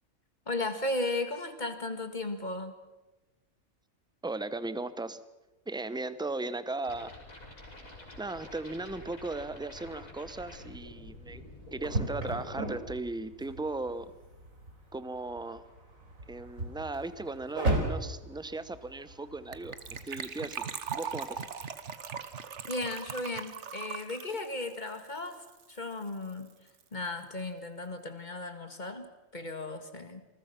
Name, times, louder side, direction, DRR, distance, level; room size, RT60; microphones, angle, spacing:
voice 1, 0.5-2.8 22.7-25.4 25.7-26.5 26.9-30.2, left 2 dB, 35° left, 8 dB, 2.1 m, -35 dB
voice 2, 4.2-5.2 5.7-7.1 8.2-11.4 11.7-14.1 14.9-15.7 16.3-20.6 20.9-21.4, right 2 dB, 5° right, 14 dB, 0.7 m, -37 dB
sound 1, 6.8-12.7, left 1 dB, 80° left, 6.4 m, -48 dB
sound 2, 10.4-20.1, right 2 dB, 75° right, 4.4 m, -37 dB
Gurgling / Trickle dribble / Fill (with liquid), 19.5-25.8 26.0-26.1 26.3-26.5 26.8-26.9, right 6 dB, 60° right, 1.4 m, -40 dB
27.5 x 20.5 x 5.9 m, 1.1 s
omnidirectional pair, 1.4 m